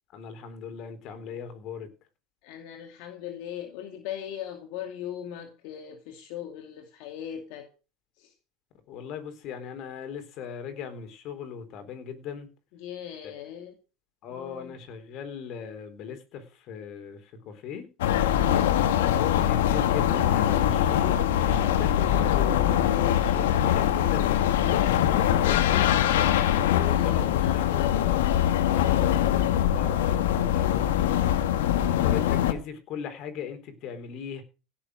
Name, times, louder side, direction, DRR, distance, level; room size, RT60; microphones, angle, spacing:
voice 1, 0.1-1.9 8.9-12.5 14.2-17.9 18.9-26.0 26.6-28.3 28.7-31.5 32.0-34.4, left 7 dB, 50° left, 8 dB, 3.9 m, -38 dB
voice 2, 2.4-7.7 8.2-8.3 12.7-13.7 14.3-14.8 26.8-28.1, left 10 dB, 65° left, 5 dB, 2.4 m, -39 dB
sound 1, 18.0-32.5, left 11 dB, 90° left, 1.6 m, -23 dB
16.5 x 7.2 x 6.3 m, 0.33 s
supercardioid pair, 125°, 0 cm